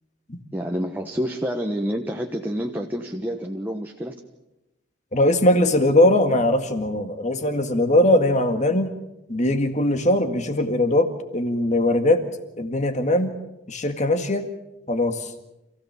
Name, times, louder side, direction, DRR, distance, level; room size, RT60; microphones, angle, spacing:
voice 1, 0.5-4.1, equal, 10° right, 2 dB, 1.2 m, -28 dB
voice 2, 5.1-8.9 9.3-12.2 12.6-13.3 13.7-14.5 14.9-15.3, left 1 dB, 35° left, 7 dB, 1.9 m, -20 dB
27.5 x 16.0 x 7.2 m, 0.95 s
head